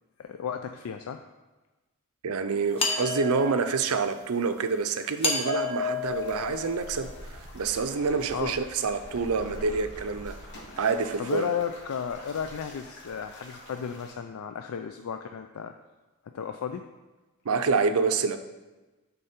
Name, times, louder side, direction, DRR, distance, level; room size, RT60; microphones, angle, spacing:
voice 1, 0.2-1.2 8.3-8.5 11.2-15.7 16.3-16.9, left 7 dB, 70° left, 7 dB, 0.4 m, -33 dB
voice 2, 2.2-10.4 10.8-11.5 17.4-18.4, right 4 dB, 70° right, 9 dB, 0.5 m, -27 dB
sound 1, 2.8-3.9 5.2-7.1, left 4 dB, 25° left, 1.0 m, -30 dB
sound 2, 6.0-14.1, left 1 dB, 55° left, 1.4 m, -45 dB
10.0 x 4.0 x 4.3 m, 1.2 s
head